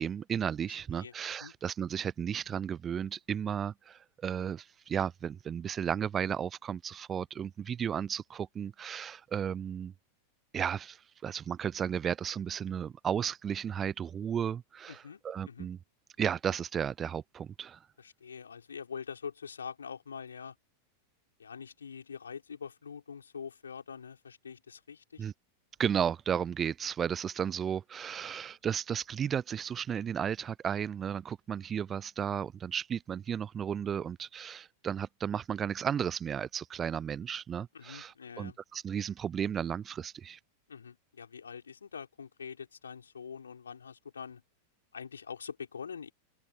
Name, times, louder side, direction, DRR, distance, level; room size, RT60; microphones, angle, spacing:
voice 1, 0.0-9.9 10.5-15.8 16.2-17.8 25.2-25.3 25.8-40.4, right 8 dB, 25° right, 0.4 m, -34 dB
voice 2, 14.9-15.2 15.5-15.7 18.0-20.6 21.4-25.3 37.7-38.6 40.7-44.4 44.9-46.1, left 6 dB, 70° left, 5.5 m, -44 dB
open air
figure-of-eight pair, 90°, 0 cm